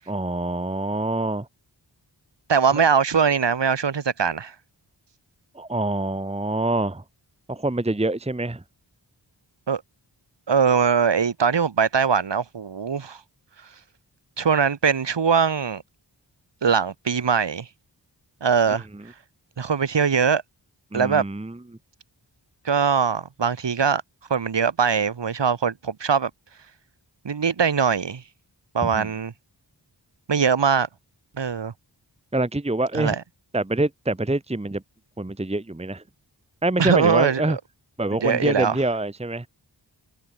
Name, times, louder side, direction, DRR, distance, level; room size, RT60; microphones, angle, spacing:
voice 1, 0.1-1.5 2.7-2.8 5.5-7.0 7.5-8.6 18.7-18.8 20.9-21.6 28.8-29.1 32.3-33.2 33.5-34.8 35.2-36.0 36.6-37.6 38.0-39.5, right 2 dB, 15° right, 1.0 m, -25 dB
voice 2, 2.5-4.5 9.7-9.8 10.5-13.2 14.4-15.8 16.6-17.7 18.4-18.9 19.6-20.4 20.9-21.2 22.6-24.0 24.3-26.3 27.2-28.2 28.7-29.3 30.3-30.9 31.4-31.7 32.9-33.2 36.8-37.6 38.1-38.8, right 6 dB, 70° right, 1.1 m, -21 dB
wide cardioid pair, 50°, 45 cm